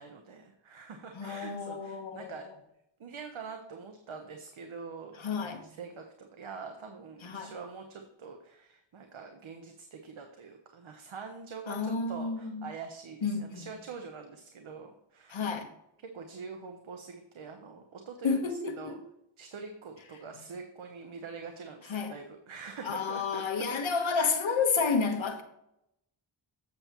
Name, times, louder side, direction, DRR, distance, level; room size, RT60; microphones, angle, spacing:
voice 1, 0.0-2.5 3.0-5.2 5.6-15.4 16.0-19.0 19.4-24.1, right 5 dB, 80° right, 0.9 m, -45 dB
voice 2, 1.1-2.5 5.2-5.6 7.2-7.5 11.7-12.7 13.2-13.7 15.3-15.7 18.2-19.0 21.9-22.1 22.8-25.4, left 5 dB, 75° left, 1.2 m, -31 dB
8.0 x 6.8 x 3.0 m
wide cardioid pair, 95°, 47 cm